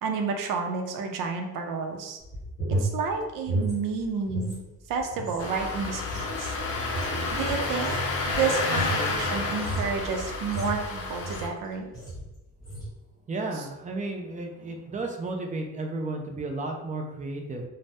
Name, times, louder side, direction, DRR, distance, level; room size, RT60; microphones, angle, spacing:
voice 1, 0.0-2.2 2.7-4.6 4.9-6.5 7.3-11.9 13.5-13.7, right 5 dB, 90° right, 4 dB, 0.5 m, -30 dB
sound 1, 2.2-4.6 4.9-11.6 11.9-12.3 12.6-12.9, right 2 dB, 10° left, 1.1 m, -33 dB
Engine starting, 5.4-11.5, left 3 dB, 50° left, 0.5 m, -30 dB
voice 2, 13.3-17.6, right 2 dB, 25° right, 2 dB, 0.4 m, -33 dB
2.6 x 2.1 x 3.4 m, 0.96 s
cardioid pair, 130°, 32 cm